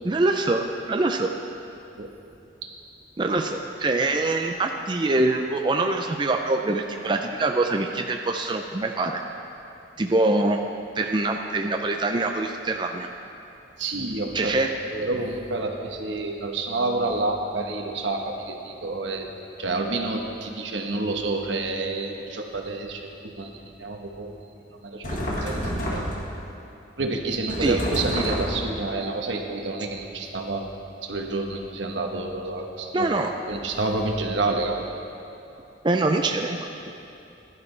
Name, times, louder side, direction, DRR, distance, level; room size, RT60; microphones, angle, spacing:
voice 1, 0.1-1.3 3.2-9.2 10.0-10.6 11.0-13.1 14.3-14.7 27.6-27.8 32.9-33.3 35.8-36.6, right 2 dB, 25° right, 4 dB, 0.4 m, -24 dB
voice 2, 13.8-14.5 14.9-19.3 19.6-23.5 23.8-24.3 24.8-25.1 25.4-26.0 27.0-30.6 31.0-33.1 33.5-34.8, right 2 dB, 80° right, 2 dB, 1.1 m, -28 dB
sound 1, 25.0-26.4 27.5-28.8, equal, 50° left, 1.8 m, -29 dB
16.0 x 11.0 x 3.3 m, 2.8 s
head